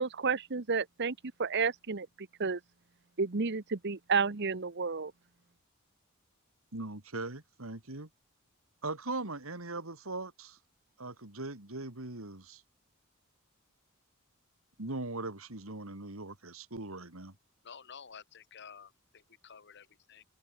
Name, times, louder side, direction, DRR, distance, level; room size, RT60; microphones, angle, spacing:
voice 1, 0.0-2.6 3.2-5.1, right 5 dB, 55° right, 1.1 m, -31 dB
voice 2, 6.7-8.1 8.8-10.6 11.0-12.6 14.8-17.3, right 2 dB, 90° right, 3.1 m, -40 dB
voice 3, 17.6-20.2, left 6 dB, 55° left, 1.6 m, -51 dB
head